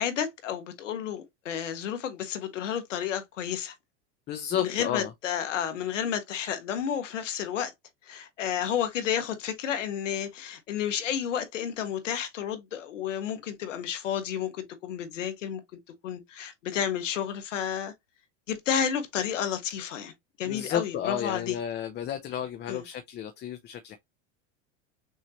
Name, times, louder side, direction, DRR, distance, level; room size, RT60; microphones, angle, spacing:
voice 1, 0.0-3.7 4.5-7.7 8.0-15.6 16.0-17.9 18.5-20.1 20.4-21.6 22.7-22.8, left 9 dB, 90° left, 1.4 m, -31 dB
voice 2, 4.3-5.1 20.5-24.0, left 9 dB, 30° left, 0.6 m, -32 dB
6.3 x 2.7 x 2.9 m
supercardioid pair, 120°, 36 cm